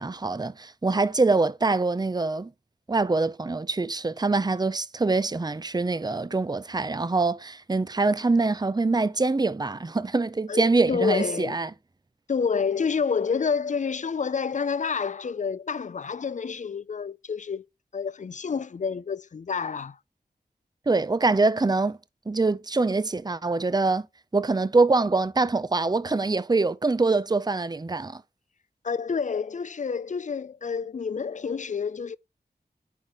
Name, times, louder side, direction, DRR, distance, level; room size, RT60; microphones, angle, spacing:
voice 1, 0.0-2.5 2.9-11.7 20.9-22.0 22.3-24.1 24.3-28.2, right 3 dB, 25° right, 0.6 m, -24 dB
voice 2, 10.5-11.6 12.3-17.6 17.9-20.0 28.8-32.2, left 5 dB, 45° left, 0.4 m, -28 dB
9.3 x 4.0 x 3.0 m
cardioid pair, 45°, 17 cm